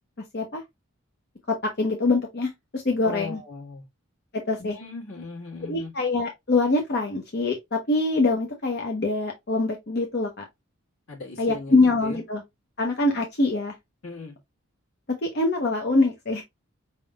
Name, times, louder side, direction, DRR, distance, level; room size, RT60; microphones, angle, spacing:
voice 1, 1.5-3.4 4.5-4.8 5.6-10.5 11.4-12.4 12.8-13.7 15.2-16.4, left 2 dB, 50° left, 0.8 m, -24 dB
voice 2, 3.0-3.8 4.6-5.9 11.1-12.2 14.0-14.4, left 3 dB, 80° left, 1.6 m, -38 dB
5.2 x 3.6 x 2.3 m
head